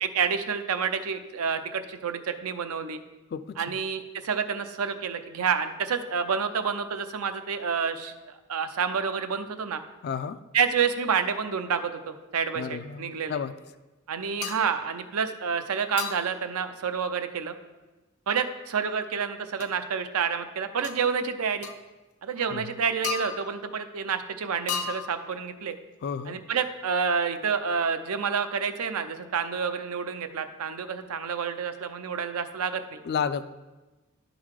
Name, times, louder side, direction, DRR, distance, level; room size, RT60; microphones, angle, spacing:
voice 1, 0.0-3.0 3.6-9.8 10.5-13.4 14.1-17.5 18.3-21.7 22.2-25.8 26.3-33.0, right 6 dB, 80° right, 9 dB, 0.5 m, -29 dB
voice 2, 3.3-3.8 10.0-10.4 12.5-13.5 22.5-22.7 26.0-26.4 33.0-33.4, left 6 dB, 45° left, 13 dB, 0.3 m, -32 dB
sound 1, 14.4-14.7 16.0-16.4 19.6-19.7 20.8-21.0 21.6-21.8 23.0-23.7 24.7-25.4, left 7 dB, 80° left, 0.7 m, -34 dB
10.5 x 3.9 x 4.7 m, 1.2 s
head